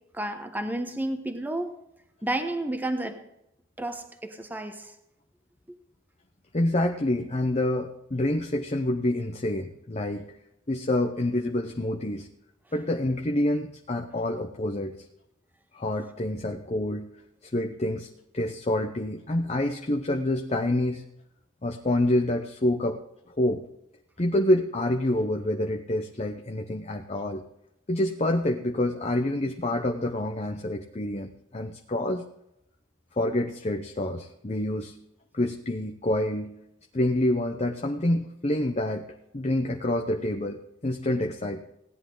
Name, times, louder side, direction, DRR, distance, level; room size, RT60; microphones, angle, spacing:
voice 1, 0.1-1.8 2.2-3.3 3.8-4.9, right 1 dB, 10° right, 1.1 m, -31 dB
voice 2, 6.5-10.3 10.7-12.3 12.7-14.9 15.7-17.1 17.4-18.1 18.3-21.0 21.6-23.0 23.3-23.6 24.2-27.4 27.9-32.2 33.2-34.9 35.3-36.5 36.9-39.1 39.3-41.6, left 1 dB, 30° left, 0.7 m, -27 dB
17.0 x 10.5 x 3.9 m
head